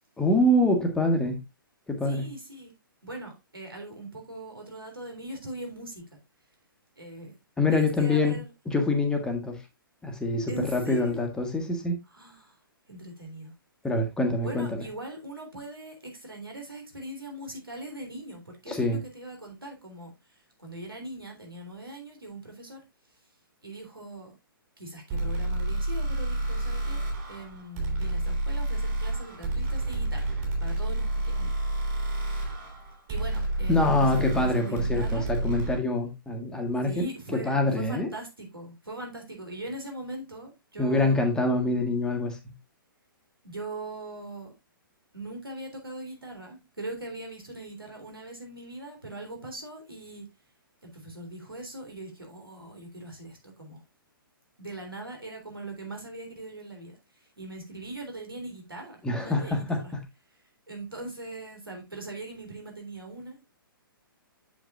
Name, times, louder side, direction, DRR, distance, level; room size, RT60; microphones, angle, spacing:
voice 1, 0.2-1.4 1.9-2.3 7.6-8.4 8.6-9.6 10.0-12.0 13.8-14.9 18.7-19.0 33.7-38.1 40.8-42.4 59.0-59.8, left 2 dB, 5° left, 1.4 m, -25 dB
voice 2, 2.0-2.7 3.0-6.0 7.0-8.5 10.5-11.2 12.1-12.6 12.9-13.5 14.4-20.1 20.6-22.8 23.6-24.3 24.8-30.2 30.6-31.5 33.1-35.3 36.8-41.2 43.4-44.5 45.1-50.2 50.8-53.8 54.6-59.9 60.7-63.4, right 1 dB, 80° right, 3.5 m, -41 dB
sound 1, 25.1-35.8, right 2 dB, 30° right, 5.5 m, -29 dB
8.0 x 7.3 x 2.5 m
figure-of-eight pair, 120°, 12 cm